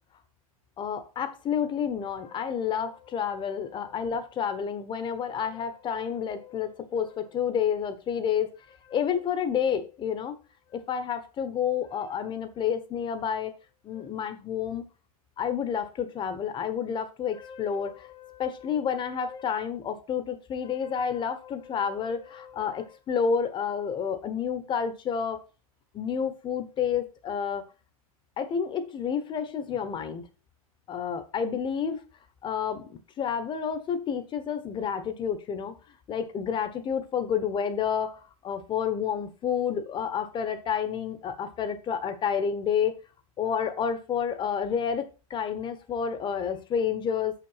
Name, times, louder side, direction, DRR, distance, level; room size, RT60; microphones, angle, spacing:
voice 1, 0.8-8.5 8.8-10.4 10.7-13.5 13.8-14.8 15.4-25.4 25.9-27.6 28.4-30.3 30.9-32.0 32.4-35.7 36.1-42.9 43.4-47.3, left 7 dB, 25° left, 1.2 m, -30 dB
6.5 x 6.0 x 5.7 m
hypercardioid pair, 125°, 19 cm